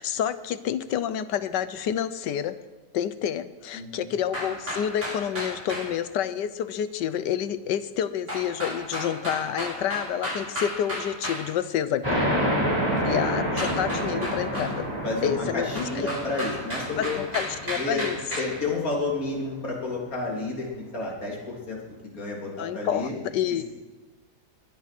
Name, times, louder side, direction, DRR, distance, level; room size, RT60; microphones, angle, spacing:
voice 1, 0.0-2.6 2.9-12.2 13.0-14.9 15.2-16.1 17.0-18.2 22.6-23.6, left 9 dB, 80° left, 13 dB, 1.4 m, -29 dB
voice 2, 3.7-4.2 12.7-13.1 15.0-17.2 17.7-18.1 18.4-23.1, left 2 dB, 50° left, -2 dB, 3.7 m, -31 dB
sound 1, 4.3-5.9 8.3-11.4 13.6-14.7 15.8-18.5, equal, 40° right, 7.1 m, -32 dB
sound 2, 12.0-19.2, equal, 15° right, 4.8 m, -29 dB
21.5 x 10.5 x 6.0 m, 1.2 s
omnidirectional pair, 1.9 m